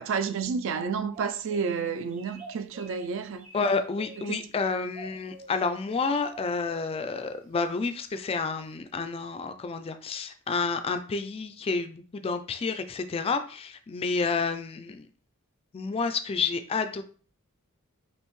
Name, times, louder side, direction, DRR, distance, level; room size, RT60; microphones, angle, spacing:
voice 1, 0.0-3.5 4.3-4.4, right 5 dB, 60° right, 0.4 m, -30 dB
sound 1, 1.1-1.8 2.1-3.0 3.4-4.4 4.9-5.5 6.3-6.8, right 3 dB, 35° right, 1.2 m, -45 dB
voice 2, 3.5-15.1 15.7-17.0, left 4 dB, 25° left, 0.3 m, -30 dB
5.3 x 2.6 x 3.1 m
head